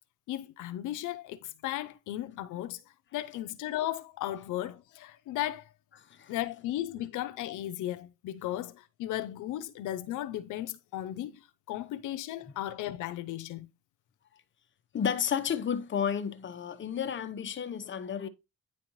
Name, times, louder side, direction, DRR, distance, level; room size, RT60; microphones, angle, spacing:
voice 1, 0.3-2.8 3.1-5.7 6.3-13.7, left 13 dB, 85° left, 0.6 m, -36 dB
voice 2, 14.9-18.3, left 8 dB, 40° left, 0.8 m, -32 dB
9.5 x 4.2 x 3.0 m
cardioid pair, 90°, 30 cm